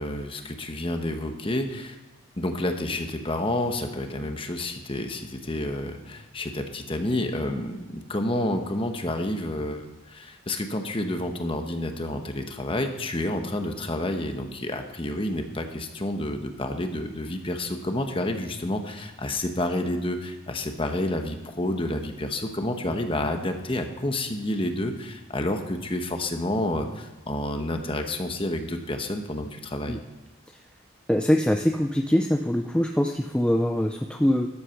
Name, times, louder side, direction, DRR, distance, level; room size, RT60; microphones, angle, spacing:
voice 1, 0.0-2.0 2.4-30.0, left 1 dB, 25° left, 6 dB, 1.1 m, -29 dB
voice 2, 31.1-34.5, left 1 dB, 5° left, 3 dB, 0.4 m, -23 dB
13.0 x 8.2 x 5.8 m, 1.2 s
head